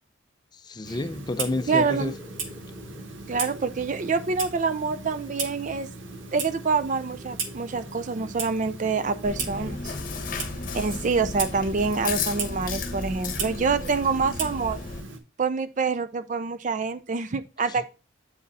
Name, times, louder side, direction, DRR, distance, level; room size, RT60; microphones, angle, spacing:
voice 1, 0.5-2.1 17.7-17.8, left 2 dB, 20° left, 0.5 m, -30 dB
sound 1, 0.7-0.9 1.2-10.5, left 3 dB, 10° right, 2.4 m, -52 dB
Clock, 0.8-15.2, right 4 dB, 70° right, 1.0 m, -37 dB
voice 2, 1.7-2.1 3.3-5.9 6.3-9.9 10.7-14.8 15.4-17.8, right 4 dB, 40° right, 0.4 m, -26 dB
Chewing mastication, 9.2-15.0, left 4 dB, 45° left, 1.0 m, -34 dB
8.0 x 5.1 x 4.0 m
head